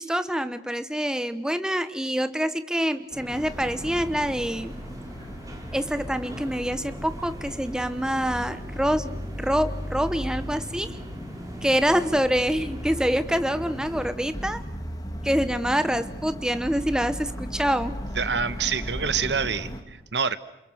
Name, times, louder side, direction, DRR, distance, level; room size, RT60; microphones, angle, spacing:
voice 1, 0.0-4.8 5.7-11.0 11.6-14.6 15.2-18.0, equal, 5° right, 11 dB, 1.0 m, -26 dB
sound 1, 3.1-14.1, equal, 20° right, 3.6 m, -42 dB
sound 2, 3.3-19.8, equal, 20° left, 2.7 m, -36 dB
voice 2, 18.2-20.4, right 6 dB, 85° right, 14 dB, 1.3 m, -27 dB
28.5 x 28.5 x 6.5 m, 0.91 s
head